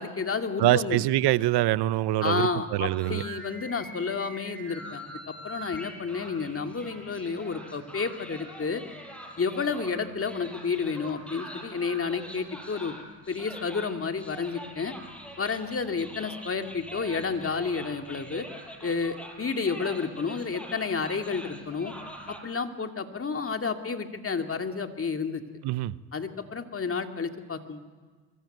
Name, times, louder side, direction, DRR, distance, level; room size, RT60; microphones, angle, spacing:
voice 1, 0.0-1.0 2.2-8.8 9.4-13.0 13.3-14.9 15.4-18.5 18.8-21.9 22.3-25.4 26.1-27.8, left 5 dB, 30° left, 2.5 m, -31 dB
voice 2, 0.6-3.2 25.6-25.9, right 15 dB, 65° right, 0.8 m, -24 dB
sound 1, 2.8-22.4, equal, 5° left, 5.3 m, -44 dB
24.0 x 23.0 x 9.2 m
supercardioid pair, 70°, 42 cm